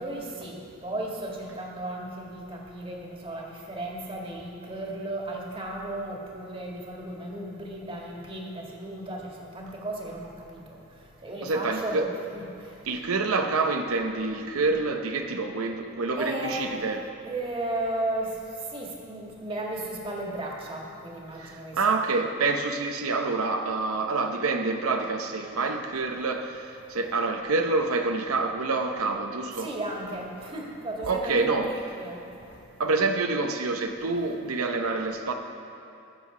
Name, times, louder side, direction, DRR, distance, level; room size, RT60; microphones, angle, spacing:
voice 1, 0.0-10.8 11.2-12.0 12.3-12.5 16.2-16.9 17.2-18.3 18.7-22.0 29.6-32.2, right 1 dB, 25° right, -1 dB, 1.7 m, -35 dB
voice 2, 11.4-12.1 12.9-17.0 21.4-29.7 31.0-31.7 32.8-35.3, right 3 dB, 90° right, 5 dB, 0.7 m, -27 dB
19.0 x 7.3 x 4.9 m, 2.7 s
head